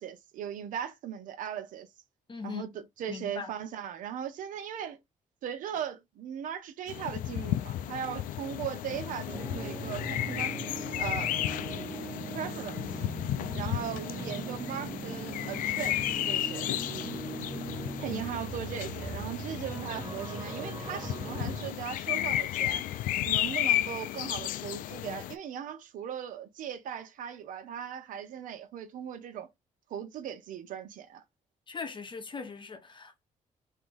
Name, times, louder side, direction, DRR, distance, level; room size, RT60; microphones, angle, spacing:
voice 1, 0.0-1.9 2.4-5.0 5.4-10.5 11.0-11.3 12.3-12.8 13.5-16.7 18.0-22.8 23.3-29.5 29.9-31.2, right 9 dB, 80° right, 0.8 m, -38 dB
voice 2, 2.3-2.6 3.1-3.5 18.1-18.3 31.7-33.2, left 5 dB, 35° left, 1.1 m, -40 dB
sound 1, 6.9-25.4, left 13 dB, 90° left, 0.4 m, -33 dB
relaxing music, 9.3-21.7, right 5 dB, 25° right, 0.4 m, -40 dB
3.5 x 2.8 x 3.8 m
cardioid pair, 80°, 14 cm